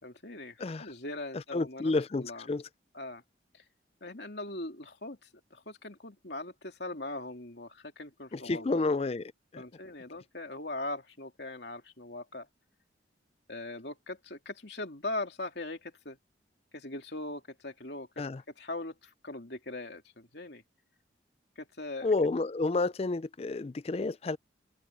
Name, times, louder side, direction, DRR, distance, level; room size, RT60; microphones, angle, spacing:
voice 1, 0.0-2.5 2.9-3.2 3.5-3.6 4.0-8.8 9.6-12.5 13.5-16.2 16.7-20.6 21.6-22.1, left 2 dB, 65° left, 3.0 m, -41 dB
voice 2, 1.5-2.6 8.3-9.2 9.5-9.6 18.2-18.4 22.0-24.4, left 3 dB, 30° left, 0.4 m, -30 dB
head